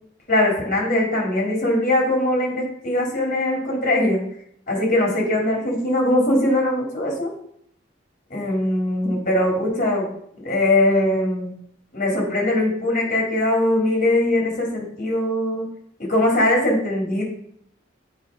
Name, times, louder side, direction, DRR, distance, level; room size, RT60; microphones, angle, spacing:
voice 1, 0.3-4.3 4.7-7.3 8.3-11.5 11.9-15.7 16.0-17.2, left 1 dB, 50° left, -2 dB, 3.2 m, -21 dB
8.3 x 4.7 x 5.0 m, 0.68 s
head